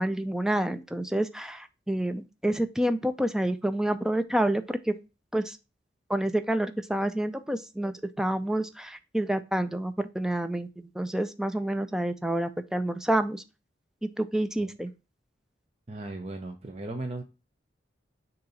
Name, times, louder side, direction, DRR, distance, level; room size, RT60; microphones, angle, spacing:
voice 1, 0.0-5.0 5.3-5.6 6.1-13.4 14.0-14.9, right 1 dB, 5° right, 10 dB, 0.5 m, -28 dB
voice 2, 15.9-17.2, right 2 dB, 35° right, 4 dB, 0.7 m, -36 dB
6.6 x 2.9 x 5.5 m, 0.28 s
head